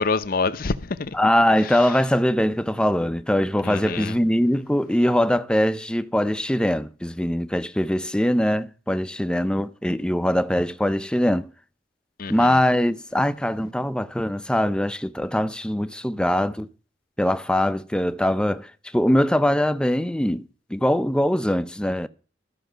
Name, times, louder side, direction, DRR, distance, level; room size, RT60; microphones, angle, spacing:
voice 1, 0.0-1.2 1.7-1.8 3.6-4.1 12.2-12.6, left 4 dB, 55° left, 0.7 m, -26 dB
voice 2, 1.1-11.5 12.3-16.7 17.2-20.4 20.7-22.1, left 1 dB, 5° left, 0.5 m, -22 dB
13.5 x 6.0 x 7.8 m
head